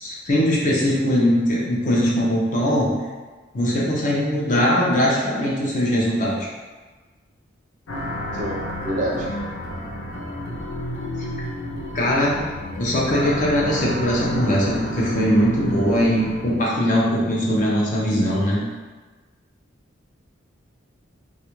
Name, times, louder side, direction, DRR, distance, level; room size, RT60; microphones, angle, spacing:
voice 1, 0.0-2.9 3.5-6.5 11.2-11.3 11.9-12.3 12.8-18.6, equal, 40° left, -5 dB, 0.5 m, -20 dB
sound 1, 7.9-16.4, left 1 dB, 85° left, 0.5 m, -31 dB
voice 2, 8.3-9.3, right 1 dB, 40° right, -2 dB, 0.4 m, -27 dB
2.3 x 2.1 x 2.9 m, 1.3 s
head